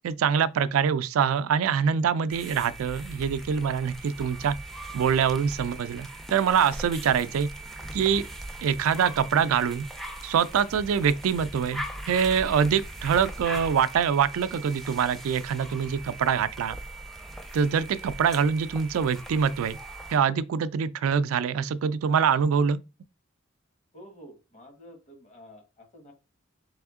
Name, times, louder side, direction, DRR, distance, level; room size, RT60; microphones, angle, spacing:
voice 1, 0.0-4.6 4.9-7.5 7.9-8.3 8.6-9.9 10.2-16.8 17.5-19.8 20.1-22.8, right 7 dB, 85° right, 0.3 m, -24 dB
sound 1, 2.3-20.2, right 1 dB, ahead, 0.4 m, -40 dB
voice 2, 7.0-7.3 23.9-26.1, equal, 35° left, 1.2 m, -49 dB
3.5 x 3.4 x 3.6 m
head